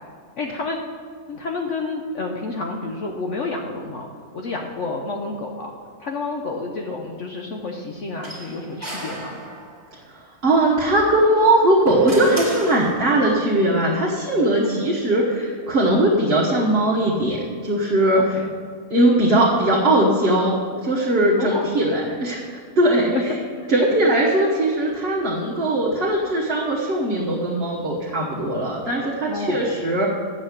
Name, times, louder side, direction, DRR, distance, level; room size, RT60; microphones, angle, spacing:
voice 1, 0.4-0.8 1.3-4.1 4.3-5.7 6.0-9.4 14.6-14.9 18.1-18.5 21.4-21.7 23.1-23.2 23.8-23.9 29.3-29.7, left 3 dB, 60° left, 1 dB, 1.0 m, -29 dB
sound 1, 8.2-10.0 11.3-13.4, right 1 dB, 10° right, 1.8 m, -33 dB
voice 2, 10.4-18.4 18.9-23.1 23.7-30.1, right 1 dB, 45° right, -5 dB, 1.3 m, -20 dB
7.6 x 6.4 x 7.9 m, 2.1 s
omnidirectional pair, 1.6 m